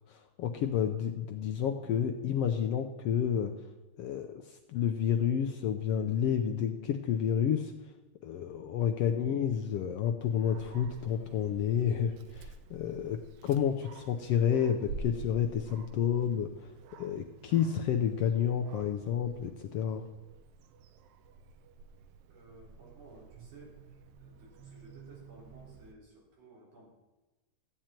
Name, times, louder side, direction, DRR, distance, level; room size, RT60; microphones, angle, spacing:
voice 1, 0.1-3.5 4.0-7.7 8.2-16.7 17.0-20.0, left 8 dB, 75° left, 5 dB, 1.4 m, -30 dB
Dog, 10.2-25.9, right 4 dB, 75° right, 1.4 m, -49 dB
voice 2, 22.3-23.8 24.2-26.9, right 1 dB, 55° right, -4 dB, 4.8 m, -56 dB
13.5 x 9.0 x 4.4 m, 1.1 s
omnidirectional pair, 3.3 m